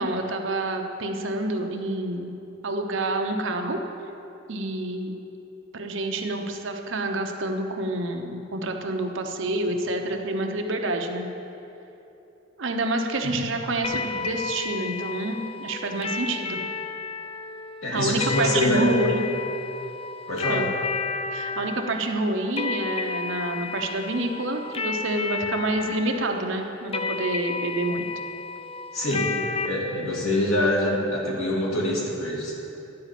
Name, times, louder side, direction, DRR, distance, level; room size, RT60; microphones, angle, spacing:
voice 1, 0.0-2.3 2.6-3.8 4.5-5.1 5.7-11.3 12.6-16.6 17.9-19.3 20.5-20.7 21.3-28.1, right 2 dB, 65° right, 3 dB, 0.8 m, -28 dB
sound 1, 13.8-29.7, left 4 dB, 25° left, 0.4 m, -32 dB
voice 2, 17.8-18.9 20.3-20.7 28.9-32.5, left 1 dB, 85° left, -4 dB, 2.3 m, -25 dB
11.0 x 5.0 x 8.2 m, 2.9 s
head